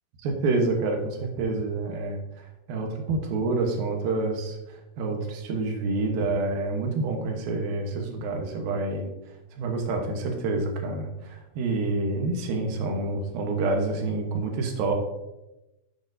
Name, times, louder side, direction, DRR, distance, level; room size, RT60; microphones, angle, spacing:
voice 1, 0.2-2.2 2.7-9.1 9.6-14.9, right 3 dB, 75° right, 3 dB, 2.8 m, -28 dB
10.0 x 8.7 x 2.7 m, 0.98 s
omnidirectional pair, 4.4 m